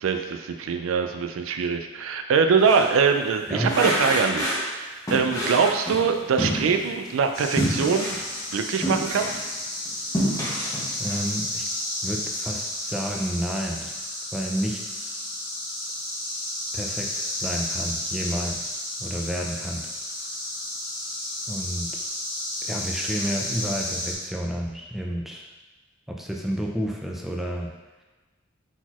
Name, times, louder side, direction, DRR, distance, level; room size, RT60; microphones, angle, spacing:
voice 1, 0.0-8.2 8.5-9.3, right 5 dB, 85° right, 6 dB, 0.4 m, -23 dB
sound 1, 2.6-2.9 3.6-4.7 5.1-7.1 7.6-9.5 9.9-11.2, equal, 20° left, 1.0 m, -28 dB
sound 2, 7.3-24.1, left 1 dB, 55° left, 1.5 m, -32 dB
voice 2, 11.0-11.7 12.0-14.0 14.3-15.1 16.7-18.7 19.0-19.8 21.5-21.9 22.6-25.5 26.1-27.7, equal, ahead, -1 dB, 0.4 m, -30 dB
4.1 x 4.0 x 2.9 m, 1.2 s
head